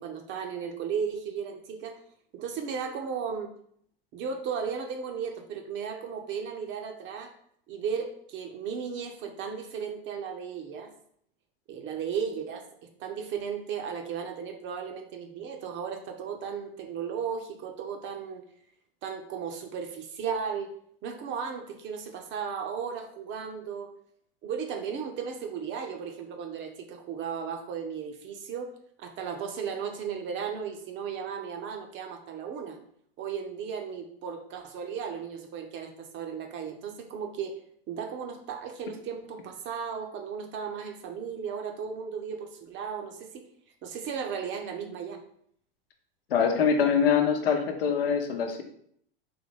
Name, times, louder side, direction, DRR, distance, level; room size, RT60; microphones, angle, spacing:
voice 1, 0.0-2.0 2.3-3.5 4.1-7.3 7.7-10.9 11.7-18.4 19.0-20.7 21.0-23.9 24.4-28.7 29.0-32.8 33.2-37.6 37.9-43.5 43.8-45.2, right 6 dB, 40° right, 4 dB, 0.7 m, -35 dB
voice 2, 46.3-48.6, left 6 dB, 75° left, 4 dB, 0.8 m, -24 dB
3.9 x 3.0 x 3.3 m, 0.65 s
hypercardioid pair, 95°, 29 cm